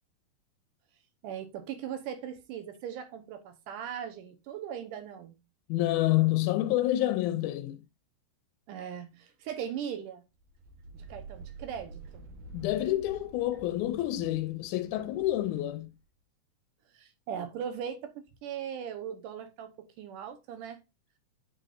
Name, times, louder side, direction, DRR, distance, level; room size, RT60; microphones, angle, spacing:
voice 1, 1.2-5.4 8.7-10.3 10.9-12.3 16.9-18.1 18.4-20.8, right 8 dB, 85° right, 2.6 m, -39 dB
voice 2, 5.7-7.8 12.5-15.9, left 15 dB, 80° left, 1.9 m, -28 dB
sound 1, 10.4-16.0, right 3 dB, 65° right, 1.9 m, -49 dB
8.1 x 5.1 x 2.5 m
omnidirectional pair, 3.6 m